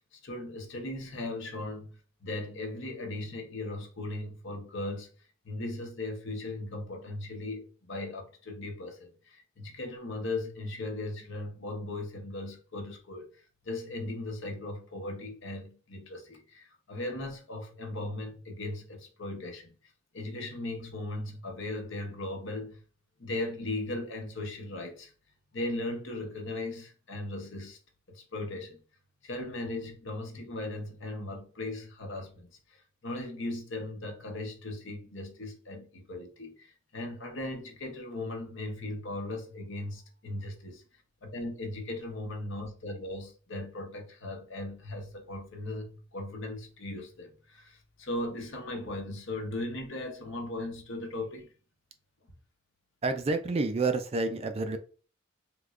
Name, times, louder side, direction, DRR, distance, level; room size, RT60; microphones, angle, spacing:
voice 1, 0.1-2.0 2.2-5.1 5.4-13.3 13.6-22.8 23.2-25.1 25.5-27.8 28.1-28.8 29.2-40.8 41.2-51.5, left 2 dB, 60° left, 0.9 m, -38 dB
voice 2, 53.0-54.8, right 3 dB, 30° right, 0.4 m, -29 dB
3.5 x 3.0 x 2.4 m
head